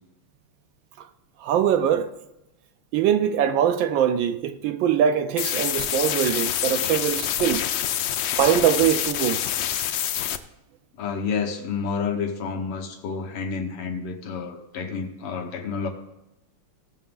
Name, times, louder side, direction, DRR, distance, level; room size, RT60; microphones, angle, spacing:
voice 1, 1.4-2.1 2.9-7.7 8.4-9.4, right 9 dB, 75° right, 1.2 m, -22 dB
sound 1, 5.4-10.4, left 10 dB, 70° left, 1.2 m, -26 dB
voice 2, 11.0-15.9, left 5 dB, 90° left, 2.1 m, -29 dB
17.0 x 6.9 x 3.8 m
omnidirectional pair, 2.4 m